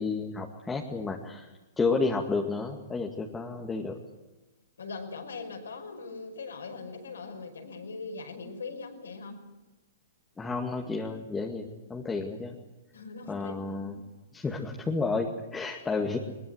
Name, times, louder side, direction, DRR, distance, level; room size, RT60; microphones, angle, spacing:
voice 1, 0.0-1.5 1.8-4.0 10.4-12.6 13.3-13.9 14.3-16.2, left 4 dB, 10° left, 0 dB, 2.1 m, -31 dB
voice 2, 4.8-9.4 12.9-13.9, left 4 dB, 80° left, 4 dB, 5.7 m, -41 dB
21.5 x 21.0 x 8.0 m, 1.1 s
hypercardioid pair, 120°, 0 cm